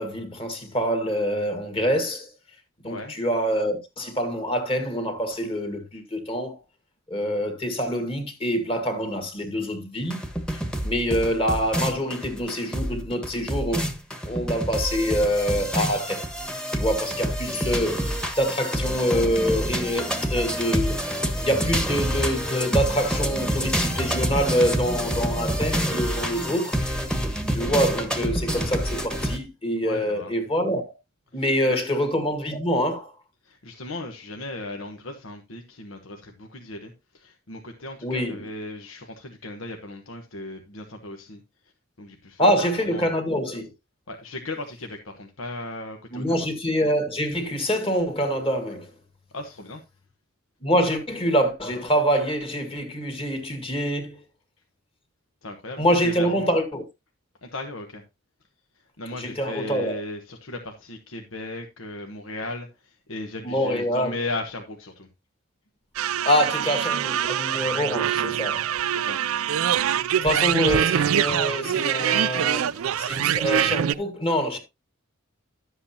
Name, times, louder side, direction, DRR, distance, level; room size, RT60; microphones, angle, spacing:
voice 1, 0.0-2.3 2.8-6.6 7.1-10.2 10.8-13.8 14.3-16.3 16.7-21.0 21.4-26.8 27.5-30.9 31.3-33.1 38.0-38.5 42.4-43.7 46.1-48.9 50.6-54.2 55.8-56.8 59.2-60.0 63.4-64.1 66.3-68.7 70.2-74.6, equal, 25° left, 2.0 m, -25 dB
sound 1, 10.1-29.4, equal, 5° left, 1.3 m, -27 dB
voice 2, 29.8-30.3 31.3-31.8 33.4-41.4 42.0-43.1 44.1-46.5 49.3-49.8 55.4-56.5 57.4-58.0 59.0-65.1 68.9-69.2, left 2 dB, 70° left, 1.2 m, -36 dB
sound 2, 66.0-73.9, right 9 dB, 90° right, 0.4 m, -24 dB
11.5 x 7.9 x 2.8 m
head